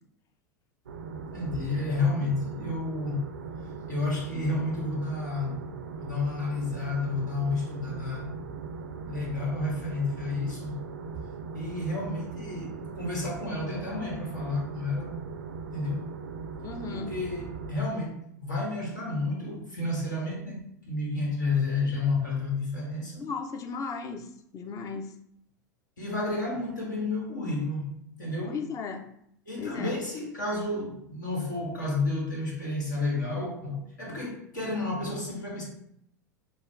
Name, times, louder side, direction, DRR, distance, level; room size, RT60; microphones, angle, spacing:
sound 1, 0.9-17.7, right 5 dB, 80° right, 0.4 m, -39 dB
voice 1, 1.3-3.2 3.9-5.6 6.0-8.3 9.0-10.8 11.1-11.2 11.5-15.1 15.7-16.1 16.9-23.2 26.0-28.6 29.5-35.6, left 3 dB, 80° left, -3 dB, 1.5 m, -31 dB
voice 2, 16.6-17.1 23.2-24.2 24.5-25.1 28.5-29.0 29.6-29.9, left 5 dB, 35° left, 5 dB, 0.6 m, -35 dB
5.7 x 2.2 x 2.6 m, 0.70 s
figure-of-eight pair, 85°, 10 cm